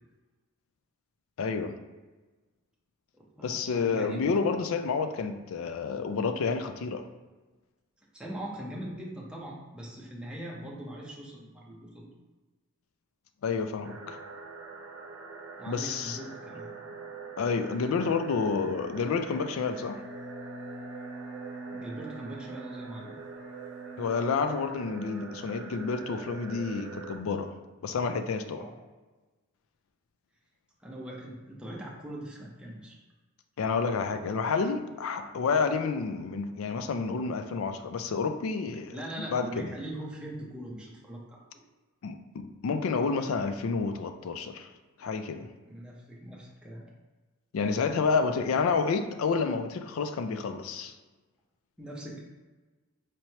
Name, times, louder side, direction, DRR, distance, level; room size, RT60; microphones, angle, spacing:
voice 1, 1.4-1.8 3.4-7.0 13.4-14.2 15.7-16.2 17.4-20.0 24.0-27.5 27.8-28.6 33.6-39.7 42.0-44.7 45.0-45.5 47.5-50.9, left 5 dB, 70° left, 8 dB, 0.4 m, -29 dB
voice 2, 3.1-4.4 8.1-12.1 15.6-16.7 21.7-23.2 28.4-28.7 30.8-33.0 38.9-41.4 45.6-46.9 51.8-52.2, right 1 dB, 5° right, -4 dB, 0.6 m, -41 dB
sound 1, 13.8-27.2, right 5 dB, 65° right, 0.7 m, -45 dB
Bowed string instrument, 19.5-26.1, right 2 dB, 10° left, 1.4 m, -45 dB
4.4 x 3.0 x 2.8 m, 1.2 s
head